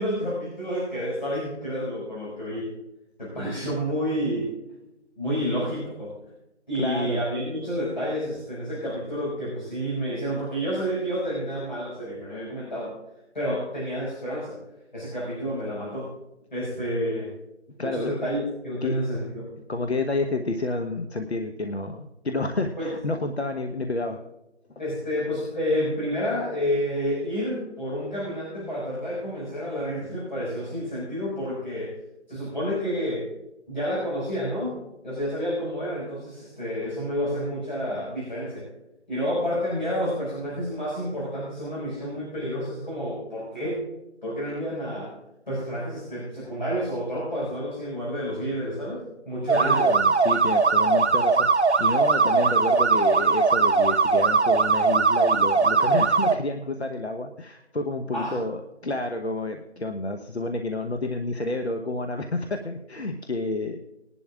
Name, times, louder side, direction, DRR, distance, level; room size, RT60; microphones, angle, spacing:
voice 1, 0.0-2.7 3.2-4.5 5.2-6.2 6.7-13.0 13.3-14.6 14.9-16.1 16.5-17.3 17.8-19.5 22.8-22.9 24.8-31.9 32.3-33.3 33.7-38.7 39.1-43.8 44.2-45.1 45.5-49.9 58.1-58.4, equal, 40° left, -6 dB, 5.4 m, -29 dB
voice 2, 6.7-7.2 17.8-18.2 18.8-19.0 19.7-24.2 49.5-51.5 51.8-63.8, left 2 dB, 65° left, 5 dB, 1.0 m, -29 dB
sound 1, 49.5-56.3, right 4 dB, 70° right, 0.9 m, -20 dB
20.5 x 11.0 x 2.4 m, 0.93 s
figure-of-eight pair, 175°, 35 cm